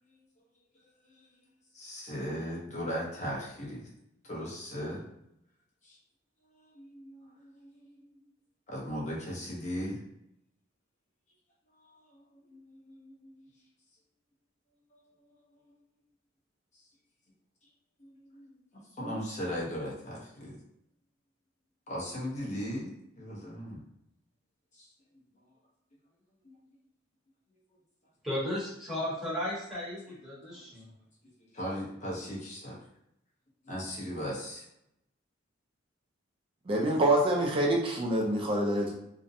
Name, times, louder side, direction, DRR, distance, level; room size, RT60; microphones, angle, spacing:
voice 1, 1.7-3.9 4.2-5.0 5.8-6.0 6.5-8.1 8.7-10.0 11.8-13.5 14.9-15.0 16.7-16.8 18.0-18.5 19.0-20.6 21.9-23.8 24.7-24.9 26.4-26.6 30.5-30.7 31.5-32.8 33.6-34.6, equal, 40° left, -4 dB, 0.8 m, -38 dB
voice 2, 28.2-30.9, left 1 dB, ahead, -9 dB, 1.0 m, -35 dB
voice 3, 36.7-38.9, right 1 dB, 30° right, -1 dB, 0.4 m, -26 dB
2.5 x 2.1 x 2.6 m, 0.77 s
head